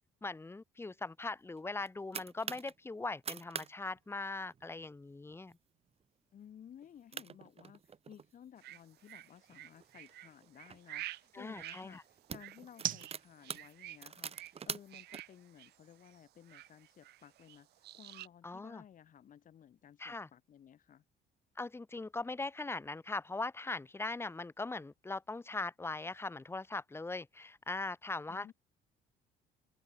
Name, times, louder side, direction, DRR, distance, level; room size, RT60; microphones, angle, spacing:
voice 1, 0.2-5.6 11.3-12.0 18.4-18.8 20.0-20.3 21.6-28.5, left 3 dB, 15° left, 1.3 m, -40 dB
sound 1, 1.6-2.7 3.1-3.7 3.9-4.0 4.4-4.7 5.3-5.5 6.0-6.1 6.8-6.9 7.1-8.3 8.9-10.8 11.5-11.7 12.0-15.2, right 6 dB, 35° right, 3.0 m, -45 dB
sound 2, 3.0-17.3, right 11 dB, 55° right, 1.2 m, -51 dB
voice 2, 6.3-21.0 28.3-28.5, left 9 dB, 50° left, 6.5 m, -57 dB
sound 3, 8.6-18.3, right 15 dB, 75° right, 2.1 m, -51 dB
open air
cardioid pair, 110°, 17 cm